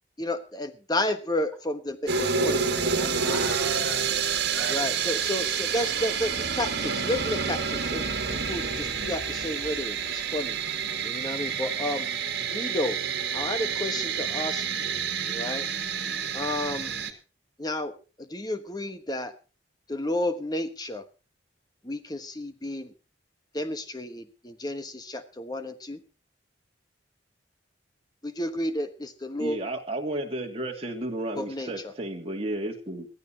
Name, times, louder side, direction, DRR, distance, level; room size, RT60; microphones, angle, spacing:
voice 1, 0.2-3.6 4.7-10.6 11.0-12.1 12.5-13.0 13.3-14.9 15.3-15.7 16.3-16.9 17.6-19.3 19.9-21.0 21.8-22.9 23.5-26.0 28.2-29.6 31.3-31.9, left 1 dB, 20° left, 9 dB, 1.3 m, -32 dB
sound 1, 2.1-17.1, right 6 dB, 55° right, 2.2 m, -29 dB
voice 2, 3.1-5.2 5.8-5.9, right 2 dB, 5° right, -2 dB, 5.1 m, -37 dB
voice 3, 29.4-33.1, right 1 dB, 30° right, 2 dB, 2.5 m, -32 dB
22.0 x 14.5 x 2.9 m, 0.32 s
head